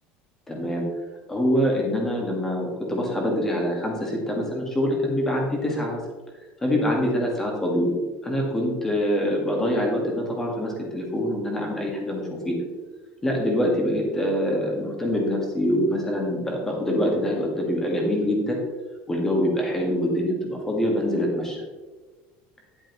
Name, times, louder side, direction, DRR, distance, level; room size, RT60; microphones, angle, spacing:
voice 1, 0.5-0.9 1.3-6.0 6.6-12.6 13.2-18.6 19.1-21.6, equal, 10° left, 0 dB, 1.7 m, -25 dB
10.5 x 8.7 x 3.1 m, 1.3 s
cardioid pair, 175°, 5 cm